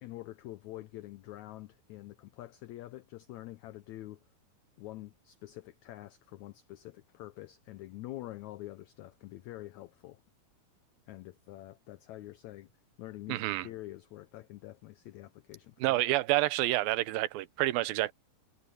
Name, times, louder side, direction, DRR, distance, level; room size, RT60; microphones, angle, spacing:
voice 1, 0.0-4.2 4.8-10.2 11.1-12.7 13.0-16.0, left 16 dB, 90° left, 1.6 m, -46 dB
voice 2, 13.3-13.7 15.8-18.1, right 17 dB, 90° right, 2.6 m, -28 dB
omnidirectional pair, 4.1 m